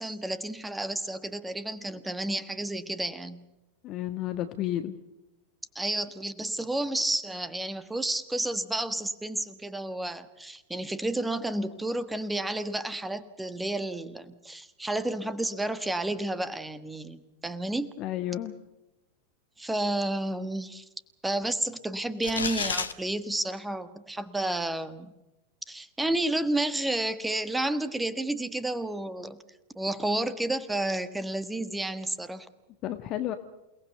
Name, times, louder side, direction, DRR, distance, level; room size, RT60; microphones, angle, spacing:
voice 1, 0.0-3.4 5.7-17.9 19.6-20.9 21.2-25.1 25.7-29.4 29.7-32.5, right 1 dB, 5° right, 13 dB, 1.4 m, -31 dB
voice 2, 3.8-5.0 18.0-18.5 32.8-33.3, left 12 dB, 35° left, 9 dB, 1.4 m, -31 dB
sound 1, 22.2-22.9, left 5 dB, 75° left, 1.3 m, -30 dB
28.5 x 19.0 x 6.7 m, 0.97 s
figure-of-eight pair, 90°, 0 cm